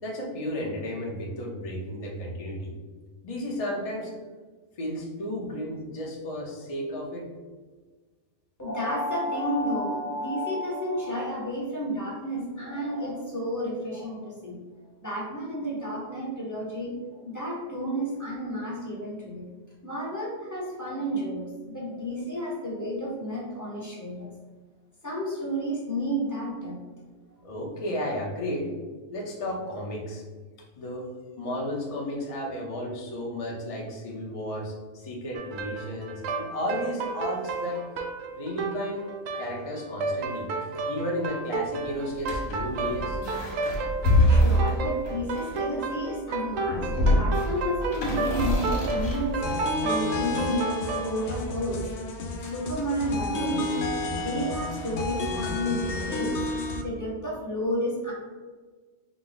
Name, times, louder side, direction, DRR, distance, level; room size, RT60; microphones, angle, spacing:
voice 1, 0.0-2.7 3.2-4.1 4.8-7.3 27.4-28.7 29.1-30.2 30.8-31.1 31.4-37.8 38.4-39.1 39.4-43.2, left 1 dB, 30° left, -2 dB, 0.8 m, -33 dB
voice 2, 8.6-19.5 19.8-24.3 25.0-26.8 44.3-51.9 52.4-53.9 54.1-56.4 56.8-58.1, equal, 15° left, -6 dB, 1.1 m, -31 dB
sound 1, 35.3-51.1, right 4 dB, 75° right, 0.9 m, -32 dB
sound 2, 42.1-45.9 46.5-49.6, left 1 dB, 85° left, 1.4 m, -25 dB
sound 3, 49.4-56.8, left 2 dB, 65° left, 0.8 m, -31 dB
5.0 x 2.2 x 3.9 m, 1.4 s
omnidirectional pair, 1.4 m